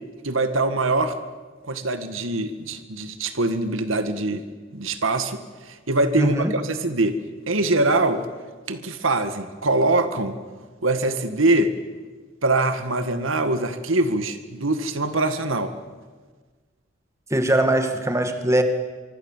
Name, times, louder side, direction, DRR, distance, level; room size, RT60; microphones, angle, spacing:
voice 1, 0.2-1.2 1.6-4.4 4.7-5.4 5.7-7.2 7.5-8.2 8.7-10.4 10.8-11.7 12.4-15.7, right 2 dB, 85° right, 9 dB, 2.0 m, -23 dB
voice 2, 6.2-6.5 17.3-18.6, right 1 dB, 15° right, 6 dB, 1.9 m, -21 dB
25.0 x 24.5 x 7.5 m, 1.4 s
head